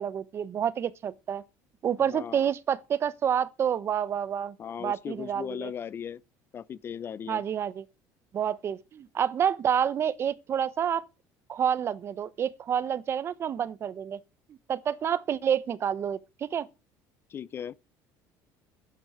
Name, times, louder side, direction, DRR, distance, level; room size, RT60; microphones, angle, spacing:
voice 1, 0.0-1.4 1.8-4.5 4.8-5.7 7.3-7.8 8.3-11.0 11.5-14.2 14.5-16.7, right 8 dB, 35° right, 0.8 m, -28 dB
voice 2, 2.1-2.5 4.6-6.2 6.5-7.4 17.3-17.8, left 8 dB, 30° left, 0.5 m, -37 dB
11.5 x 9.3 x 5.7 m
cardioid pair, 135°, 7 cm